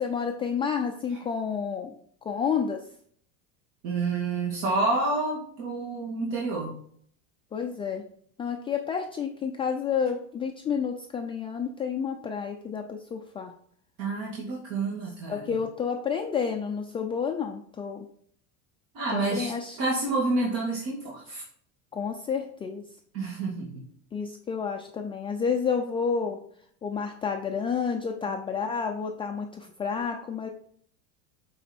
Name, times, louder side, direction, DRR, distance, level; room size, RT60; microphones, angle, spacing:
voice 1, 0.0-2.0 2.2-2.8 7.5-8.0 8.4-13.5 15.3-18.1 19.1-19.8 21.9-22.8 24.1-26.4 26.8-30.5, left 6 dB, 15° left, 2 dB, 0.4 m, -30 dB
voice 2, 3.8-6.7 14.0-15.6 18.9-19.5 19.8-21.4 23.1-23.8, right 3 dB, 55° right, -4 dB, 2.2 m, -29 dB
9.3 x 4.1 x 4.3 m, 0.62 s
supercardioid pair, 140°, 39 cm